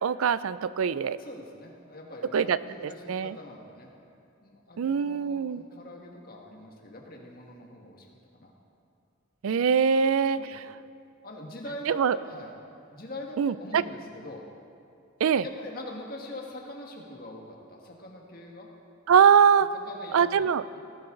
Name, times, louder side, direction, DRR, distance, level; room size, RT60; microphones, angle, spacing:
voice 1, 0.0-1.2 2.3-2.6 3.1-3.4 4.8-5.6 9.4-10.6 11.9-12.2 13.4-13.8 15.2-15.4 19.1-19.7 20.1-20.6, right 7 dB, 90° right, 16 dB, 0.4 m, -22 dB
voice 2, 1.2-3.9 4.4-8.1 8.3-8.5 9.7-10.5 11.2-12.0 12.2-12.5 12.9-14.5 15.4-18.7 19.7-20.8, left 1 dB, 45° left, 0 dB, 1.7 m, -43 dB
19.0 x 11.5 x 3.9 m, 2.5 s
head